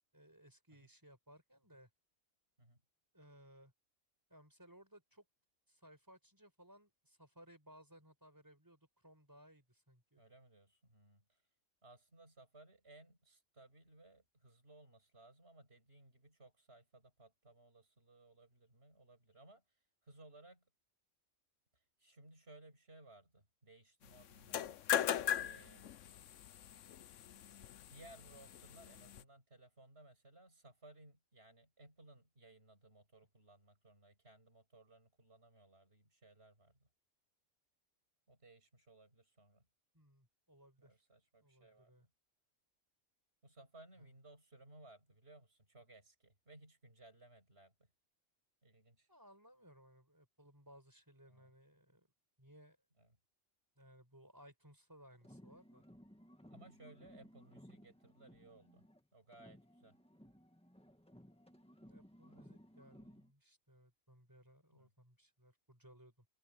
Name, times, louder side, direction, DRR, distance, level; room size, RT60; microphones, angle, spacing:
voice 1, 0.1-1.9 3.1-3.7 4.3-5.2 5.7-10.2 28.3-28.4 39.9-41.0 41.4-42.1 49.1-52.1 52.4-52.8 53.8-55.8 61.8-66.3, equal, 15° right, 4.5 m, -62 dB
voice 2, 10.1-11.4 11.8-20.6 21.7-24.7 25.4-25.9 27.9-36.9 38.3-39.6 40.8-42.1 43.4-47.7 48.6-49.1 51.3-51.5 53.0-53.1 56.5-58.9 59.1-60.0 64.7-64.9, right 2 dB, 50° right, 7.5 m, -61 dB
sound 1, 24.4-29.2, left 10 dB, 70° left, 1.1 m, -39 dB
sound 2, 55.1-59.0 59.3-63.3, equal, 5° left, 1.9 m, -60 dB
omnidirectional pair, 1.3 m